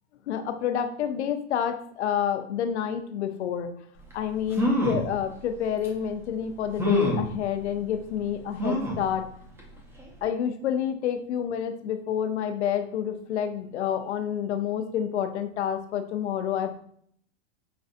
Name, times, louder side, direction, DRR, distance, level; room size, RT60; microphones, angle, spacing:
voice 1, 0.3-3.7 4.1-9.2 10.2-16.8, left 9 dB, 75° left, 8 dB, 0.6 m, -28 dB
sound 1, 4.1-4.2 4.5-5.1 5.8-5.9 6.8-7.3 8.6-9.1 9.6-9.7 10.0-10.1, equal, 5° right, 0.6 m, -25 dB
5.3 x 2.5 x 2.5 m, 0.63 s
hypercardioid pair, 135°, 34 cm